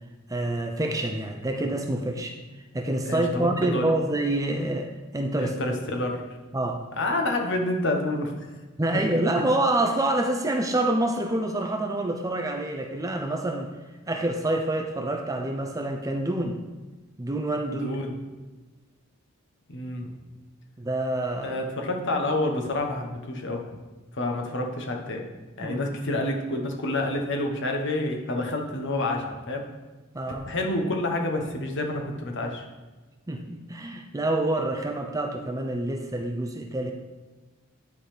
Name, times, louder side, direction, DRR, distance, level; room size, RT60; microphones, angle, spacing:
voice 1, 0.3-2.4 2.7-5.6 6.5-6.8 8.8-13.7 14.1-16.6 17.2-17.9 20.8-21.6 25.6-26.0 30.1-30.5 33.3-36.9, right 1 dB, 15° right, 4 dB, 0.5 m, -27 dB
voice 2, 3.0-3.9 5.4-6.2 6.9-8.5 17.7-18.1 19.7-20.1 21.4-23.6 24.1-25.2 25.6-29.7 30.5-32.6, left 1 dB, 55° left, 2 dB, 1.2 m, -28 dB
10.5 x 4.1 x 5.0 m, 1.2 s
head